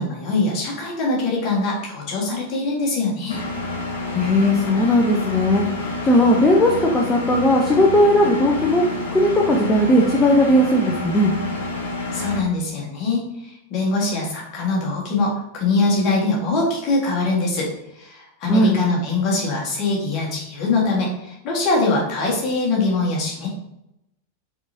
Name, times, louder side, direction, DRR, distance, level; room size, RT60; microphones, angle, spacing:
voice 1, 0.0-3.4 12.1-23.5, left 3 dB, 35° left, -3 dB, 1.6 m, -23 dB
Engine, 3.3-12.4, left 2 dB, 60° left, 1.3 m, -28 dB
voice 2, 4.1-5.7 6.0-8.8 9.1-11.3 18.5-18.8, left 1 dB, 15° left, -1 dB, 0.7 m, -17 dB
4.6 x 4.0 x 2.7 m, 0.84 s
figure-of-eight pair, 90°, 0 cm